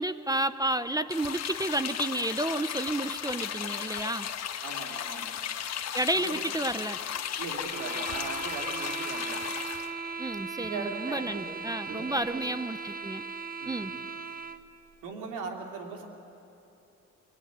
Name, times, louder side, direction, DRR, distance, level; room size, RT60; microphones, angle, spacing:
voice 1, 0.0-4.3 5.9-7.0 10.2-13.2 13.6-13.9, right 1 dB, 10° right, 12 dB, 0.7 m, -31 dB
sound 1, 1.1-9.9, left 9 dB, 60° left, 1.3 m, -35 dB
voice 2, 4.6-5.4 6.2-6.4 7.4-9.4 10.6-11.6 11.9-12.4 13.6-14.0 15.0-16.1, right 4 dB, 90° right, 1 dB, 3.2 m, -39 dB
sound 2, 7.6-14.7, right 4 dB, 30° right, 1.0 m, -38 dB
24.0 x 19.5 x 9.5 m, 2.8 s
cardioid pair, 90°, 30 cm